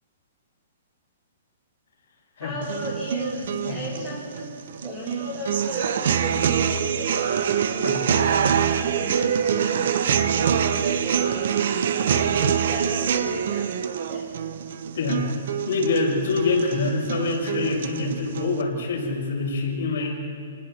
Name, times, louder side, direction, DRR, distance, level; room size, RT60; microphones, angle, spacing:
voice 1, 2.4-4.4 4.8-13.7 14.1-14.3, left 1 dB, 10° right, -6 dB, 7.2 m, -36 dB
sound 1, 2.6-18.6, right 8 dB, 60° right, 1.0 m, -25 dB
voice 2, 14.9-15.3 15.6-20.2, left 3 dB, 70° left, -2 dB, 6.3 m, -25 dB
30.0 x 19.5 x 4.5 m, 2.3 s
hypercardioid pair, 170°, 0 cm